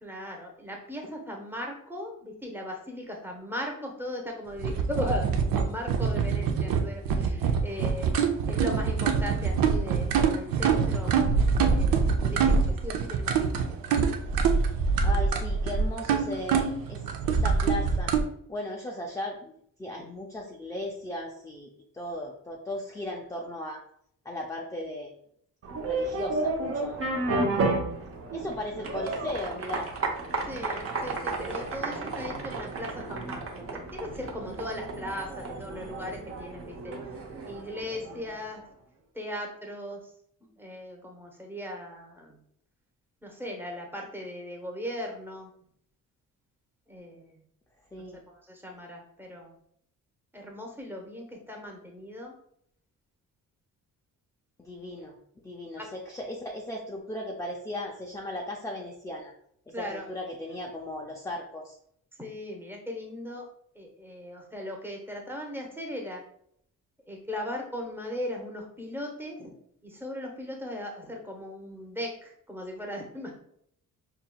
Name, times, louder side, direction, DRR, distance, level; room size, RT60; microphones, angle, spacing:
voice 1, 0.0-8.1 8.5-11.3 11.7-13.8 20.0-20.1 30.5-37.0 37.5-38.6 39.1-40.1 40.4-42.4 43.2-45.5 46.9-47.4 48.0-49.5 50.3-52.3 55.8-55.9 59.7-60.1 62.2-63.4 63.7-66.2 67.1-69.5 69.8-73.4, left 1 dB, 5° right, 0 dB, 0.7 m, -38 dB
sound 1, 4.6-18.2, right 5 dB, 75° right, 0.6 m, -25 dB
voice 2, 15.0-18.1 18.5-19.5 19.8-21.7 21.9-23.8 24.3-25.1 25.9-27.6 28.3-29.9 47.9-48.2 54.6-55.2 55.4-59.3 59.8-61.8, left 1 dB, 10° left, 0 dB, 0.3 m, -37 dB
sound 2, 25.6-38.4, right 2 dB, 40° right, 0.7 m, -32 dB
5.6 x 2.8 x 2.2 m, 0.68 s
cardioid pair, 150°, 35 cm